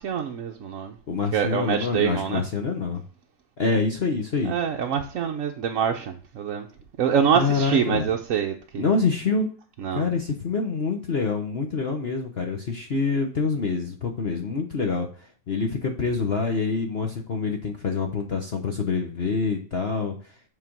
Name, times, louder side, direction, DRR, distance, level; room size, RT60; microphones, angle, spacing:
voice 1, 0.0-1.0 1.3-2.4 4.4-6.7 7.0-8.9 9.8-10.1, right 8 dB, 60° right, 2 dB, 1.0 m, -25 dB
voice 2, 1.1-3.0 3.6-4.5 7.3-8.1 8.8-9.5 9.9-20.3, left 4 dB, 45° left, 3 dB, 1.0 m, -26 dB
7.9 x 4.2 x 6.0 m, 0.40 s
omnidirectional pair, 1.9 m